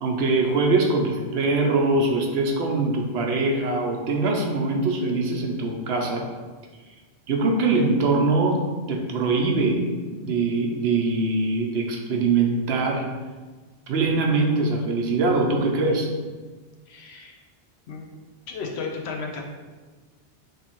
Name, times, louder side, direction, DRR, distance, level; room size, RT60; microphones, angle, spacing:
voice 1, 0.0-6.2 7.3-8.6 8.9-13.0 13.9-16.1, right 3 dB, 70° right, 1 dB, 0.9 m, -23 dB
voice 2, 16.9-17.4 17.9-18.1 18.5-19.4, left 4 dB, 70° left, 0 dB, 0.9 m, -33 dB
3.3 x 3.1 x 4.4 m, 1.4 s
omnidirectional pair, 1.1 m